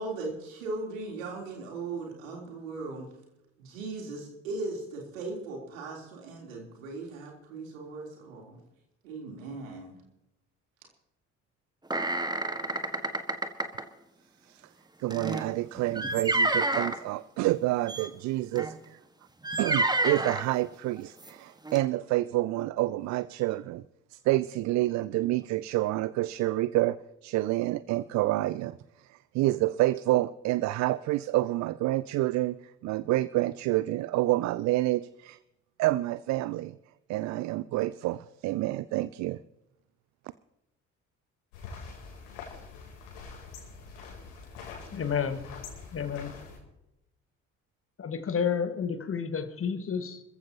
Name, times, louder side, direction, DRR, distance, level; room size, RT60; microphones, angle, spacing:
voice 1, 0.0-3.1 3.6-8.6 9.0-10.0, right 3 dB, 70° right, 0 dB, 3.7 m, -38 dB
sound 1, 11.9-13.8 15.1-17.0 17.9-18.1 18.6-18.7 19.4-20.5 21.2-21.3 21.7-21.8, right 2 dB, 10° right, 1.6 m, -29 dB
voice 2, 15.0-19.0 19.6-23.8 24.1-27.0 27.2-28.8 29.1-32.6 32.8-35.4 35.8-36.7 37.1-39.4, right 17 dB, 45° right, 18 dB, 0.5 m, -28 dB
sound 2, 41.5-46.6, left 5 dB, 65° left, 3.6 m, -45 dB
voice 3, 44.9-45.4 45.9-46.3 48.0-50.2, left 6 dB, 35° left, 9 dB, 1.7 m, -30 dB
26.5 x 15.0 x 2.9 m, 0.89 s
figure-of-eight pair, 50°, 40 cm